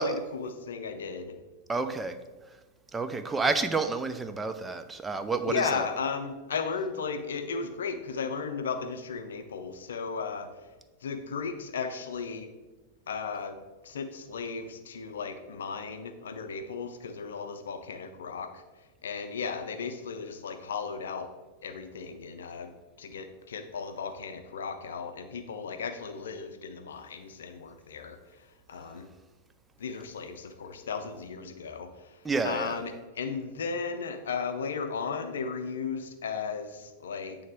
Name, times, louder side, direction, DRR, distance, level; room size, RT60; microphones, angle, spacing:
voice 1, 0.0-1.4 5.5-10.5 11.0-12.5 13.1-13.6 13.8-18.6 19.0-21.3 21.6-22.7 23.0-28.2 28.7-29.1 29.8-32.2 32.4-37.4, left 5 dB, 65° left, 8 dB, 0.6 m, -35 dB
voice 2, 1.7-2.2 2.9-5.9 32.2-32.8, right 3 dB, 10° right, 8 dB, 0.4 m, -29 dB
8.4 x 3.4 x 3.4 m, 1.2 s
figure-of-eight pair, 90°, 0 cm